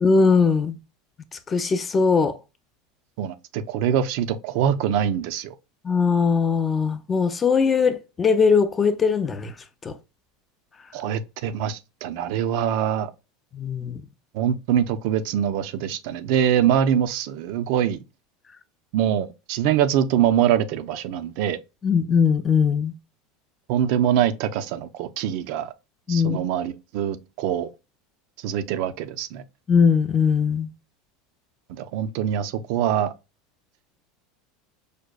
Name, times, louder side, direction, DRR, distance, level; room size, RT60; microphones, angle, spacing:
voice 1, 0.0-0.8 1.5-2.4 5.8-9.5 9.8-9.9 13.5-14.0 21.8-22.9 26.1-26.4 29.7-30.7, left 5 dB, 20° left, 0.4 m, -20 dB
voice 2, 3.2-5.5 10.9-13.1 14.3-18.0 18.9-21.6 23.7-25.7 26.1-27.7 28.4-29.4 31.7-33.1, right 9 dB, 65° right, 0.4 m, -24 dB
4.9 x 2.2 x 2.3 m
supercardioid pair, 125°, 0 cm